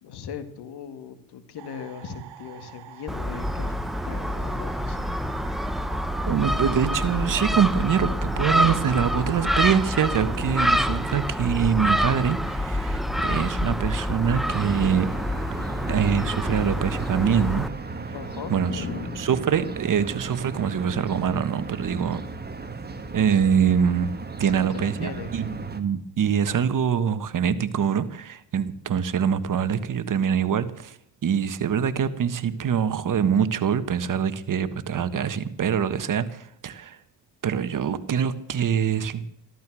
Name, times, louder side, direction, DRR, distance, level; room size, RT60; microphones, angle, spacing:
voice 1, 0.0-3.8 4.0-5.1 18.1-19.3 24.4-25.4, left 7 dB, 70° left, 10 dB, 2.2 m, -38 dB
sound 1, 1.6-12.6, right 12 dB, 80° right, 1.7 m, -44 dB
Gull seagull, 3.1-17.7, equal, ahead, 1.0 m, -27 dB
voice 2, 6.3-15.1 15.9-17.6 18.1-18.2 18.5-18.8 19.2-22.2 23.1-24.1 24.4-30.9 31.2-37.0 37.4-39.3, right 7 dB, 50° right, 13 dB, 1.4 m, -24 dB
sound 2, 14.4-25.8, right 3 dB, 25° right, 2.0 m, -36 dB
14.0 x 13.5 x 6.2 m, 0.71 s
cardioid pair, 85°, 41 cm